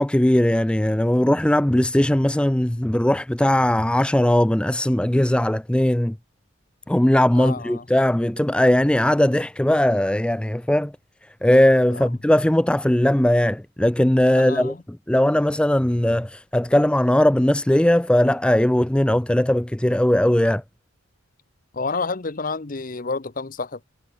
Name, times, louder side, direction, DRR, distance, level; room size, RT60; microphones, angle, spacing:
voice 1, 0.0-6.2 6.9-10.9 11.4-14.7 15.1-20.6, left 1 dB, 5° left, 0.3 m, -19 dB
voice 2, 7.3-7.8 11.9-12.1 14.3-14.8 21.7-23.8, left 4 dB, 40° left, 0.7 m, -29 dB
head